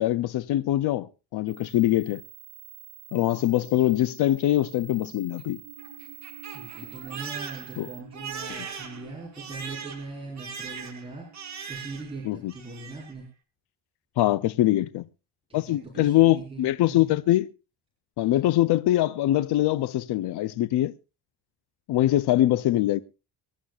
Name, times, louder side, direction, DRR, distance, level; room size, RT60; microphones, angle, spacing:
voice 1, 0.0-2.2 3.1-5.6 7.8-7.9 12.3-12.5 14.2-15.1 15.5-17.5 18.2-20.9 21.9-23.0, left 14 dB, 75° left, 0.6 m, -23 dB
sound 1, 1.5-8.0, right 17 dB, 70° right, 1.8 m, -47 dB
Crying sobbing, 5.2-12.2 12.5-13.1, right 6 dB, 40° right, 2.2 m, -40 dB
voice 2, 6.4-11.3 11.7-13.3 15.5-17.1, right 3 dB, 15° right, 4.2 m, -40 dB
24.5 x 11.5 x 2.4 m
cardioid pair, 155°, 40 cm